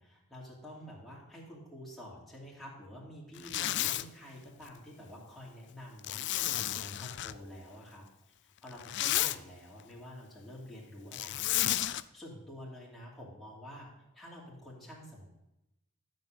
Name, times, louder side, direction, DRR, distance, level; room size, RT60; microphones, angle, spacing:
voice 1, 0.0-8.0 8.4-15.3, equal, ahead, -6 dB, 2.5 m, -49 dB
Zipper (clothing), 3.4-4.1 6.0-7.3 8.7-9.4 11.1-12.0, left 14 dB, 55° left, 0.5 m, -32 dB
13.0 x 5.4 x 8.9 m, 0.91 s
head